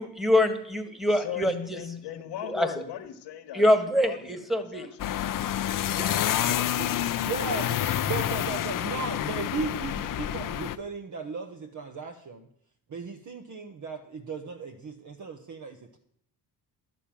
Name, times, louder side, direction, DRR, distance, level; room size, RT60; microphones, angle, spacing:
voice 1, 0.0-1.8 2.5-2.7 3.5-4.8, left 1 dB, ahead, 8 dB, 1.6 m, -24 dB
voice 2, 1.1-3.6 4.0-5.1, left 10 dB, 90° left, 7 dB, 1.3 m, -38 dB
sound 1, 5.0-10.8, left 11 dB, 55° left, 0.6 m, -28 dB
voice 3, 5.6-7.0 7.5-8.1, right 4 dB, 75° right, 0 dB, 5.3 m, -43 dB
voice 4, 7.3-7.7 8.1-12.5 12.9-16.0, right 5 dB, 50° right, 5 dB, 1.1 m, -36 dB
11.5 x 6.7 x 9.0 m, 0.69 s
cardioid pair, 95°, 39 cm